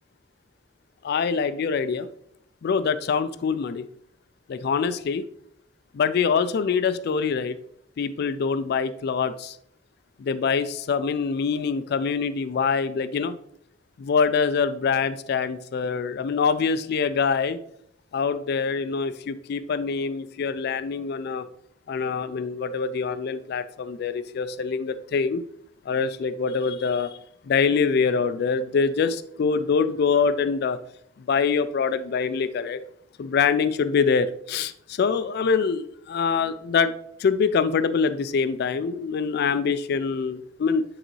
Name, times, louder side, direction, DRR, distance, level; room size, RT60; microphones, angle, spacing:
voice 1, 1.0-2.1 2.6-3.8 4.5-5.2 5.9-7.6 8.0-9.6 10.2-13.4 14.0-17.6 18.1-21.5 21.9-25.4 25.9-27.2 27.4-30.8 31.3-32.8 33.2-36.9 37.2-40.8, left 5 dB, 60° left, 12 dB, 0.3 m, -24 dB
8.8 x 3.9 x 3.1 m, 0.69 s
head